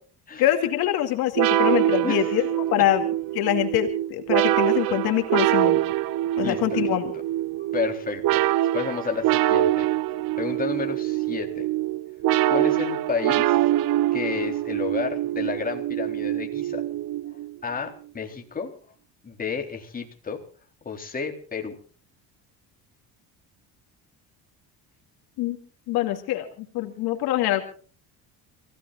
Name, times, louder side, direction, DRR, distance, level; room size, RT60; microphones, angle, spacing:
voice 1, 0.4-3.0 3.3-5.8 6.4-7.1 25.4-25.6 25.9-27.7, left 13 dB, 70° left, 5 dB, 2.7 m, -24 dB
sound 1, 1.3-17.6, right 14 dB, 60° right, 0.9 m, -24 dB
voice 2, 2.0-2.3 6.4-6.9 7.6-8.4 8.7-9.9 10.4-11.7 12.5-13.6 14.1-16.8 17.6-18.7 19.2-20.4 20.8-21.8, left 5 dB, 20° left, 2 dB, 3.8 m, -31 dB
29.5 x 16.5 x 2.5 m, 0.42 s
cardioid pair, 120°, 38 cm